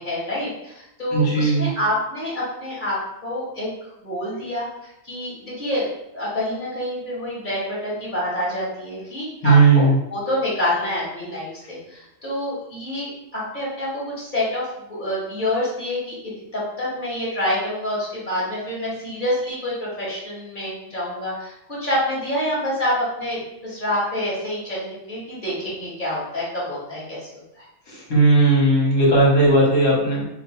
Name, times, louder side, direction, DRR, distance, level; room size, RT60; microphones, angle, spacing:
voice 1, 0.0-3.7 4.0-4.7 5.0-5.9 6.1-14.6 14.9-27.6, left 1 dB, 30° left, -7 dB, 1.8 m, -27 dB
voice 2, 1.1-1.7 9.4-10.0 27.9-30.2, right 2 dB, 60° left, -5 dB, 2.0 m, -16 dB
6.4 x 3.2 x 2.3 m, 0.82 s
omnidirectional pair, 1.7 m